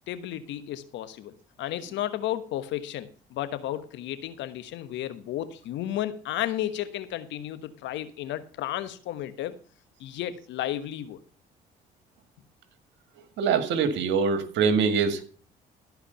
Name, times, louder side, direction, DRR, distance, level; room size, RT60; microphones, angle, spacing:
voice 1, 0.1-9.6 10.0-11.2, left 12 dB, 70° left, 1.2 m, -33 dB
voice 2, 13.4-15.2, right 5 dB, 70° right, 1.9 m, -24 dB
15.0 x 4.9 x 6.8 m
supercardioid pair, 65°, 19 cm